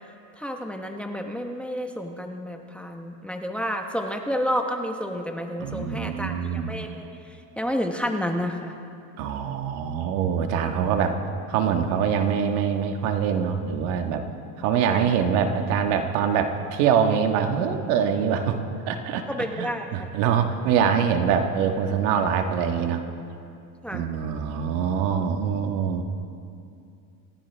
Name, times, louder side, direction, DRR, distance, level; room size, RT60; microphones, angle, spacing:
voice 1, 0.4-8.7 14.9-15.3 19.3-20.1 23.8-24.0, equal, 5° left, 3 dB, 0.9 m, -30 dB
voice 2, 5.6-6.7 9.2-11.2 11.5-14.2 14.6-19.2 19.5-23.0 23.9-26.0, right 7 dB, 85° right, 5 dB, 1.6 m, -24 dB
27.0 x 15.0 x 3.5 m, 2.5 s
cardioid pair, 140°, 41 cm